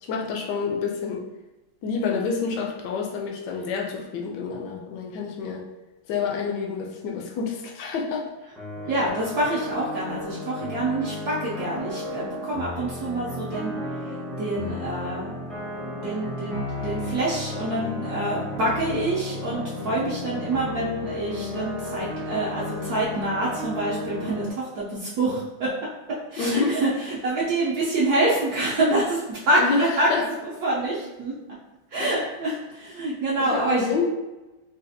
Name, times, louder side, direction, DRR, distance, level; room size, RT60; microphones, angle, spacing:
voice 1, 0.0-1.2 1.8-5.7 6.1-8.3 26.4-26.8 29.6-30.2 32.0-32.1 33.4-34.1, left 5 dB, 75° left, 1 dB, 1.1 m, -28 dB
sound 1, 8.6-24.5, left 2 dB, ahead, 0.3 m, -33 dB
voice 2, 8.9-13.7 14.1-15.4 15.8-25.7 26.1-30.1 30.4-31.3 31.9-33.9, right 2 dB, 70° right, -6 dB, 1.0 m, -26 dB
4.0 x 2.4 x 2.6 m, 1.1 s
omnidirectional pair, 2.0 m